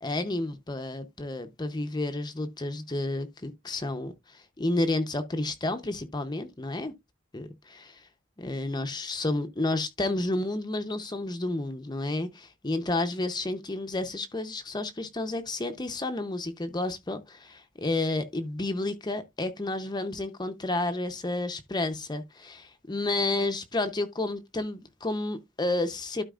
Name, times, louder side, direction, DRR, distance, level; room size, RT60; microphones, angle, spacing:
voice 1, 0.0-6.9 7.3-8.1 8.4-26.2, left 2 dB, 20° left, 0.7 m, -31 dB
12.5 x 4.6 x 2.4 m
head